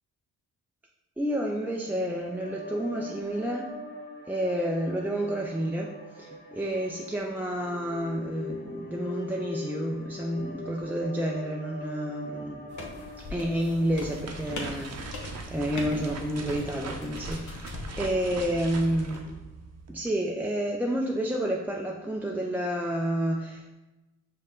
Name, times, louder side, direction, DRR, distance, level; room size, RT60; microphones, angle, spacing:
voice 1, 1.2-3.7 4.3-12.6 13.3-19.4 19.9-23.7, right 1 dB, 5° right, -2 dB, 0.4 m, -30 dB
sound 1, 1.7-15.1, left 2 dB, 25° left, 0.9 m, -42 dB
sound 2, 12.7-19.2, left 2 dB, 50° left, 1.0 m, -41 dB
sound 3, 13.8-20.1, right 3 dB, 45° right, 0.8 m, -40 dB
5.2 x 2.2 x 3.8 m, 1.1 s
supercardioid pair, 50°, 38 cm